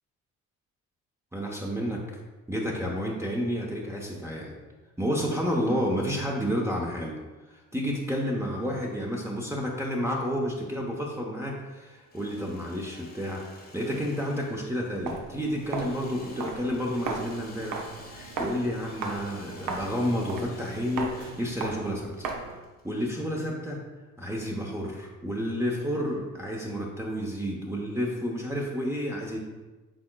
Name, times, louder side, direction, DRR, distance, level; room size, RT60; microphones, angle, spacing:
voice 1, 1.3-2.0 2.5-4.6 5.0-7.2 7.5-22.3 22.8-23.8 24.2-29.4, equal, 10° right, -3 dB, 0.7 m, -30 dB
Engine / Sawing, 11.9-23.6, left 2 dB, 25° left, 0.8 m, -50 dB
Walk footsteps, 15.0-22.6, right 4 dB, 75° right, 0.8 m, -37 dB
6.1 x 3.7 x 2.3 m, 1.2 s
supercardioid pair, 65°, 35 cm